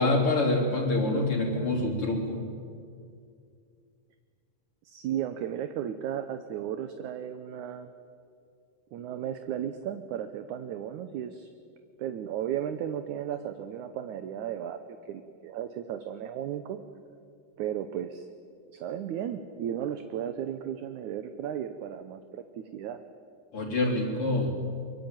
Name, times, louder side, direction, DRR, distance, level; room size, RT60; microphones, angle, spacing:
voice 1, 0.0-2.4 23.5-24.5, left 2 dB, 40° left, -1 dB, 4.3 m, -26 dB
voice 2, 4.9-7.9 8.9-11.5 12.0-16.8 17.6-18.3 18.7-23.0, right 10 dB, 70° right, 9 dB, 2.2 m, -35 dB
24.0 x 23.5 x 9.1 m, 2.3 s
omnidirectional pair, 4.0 m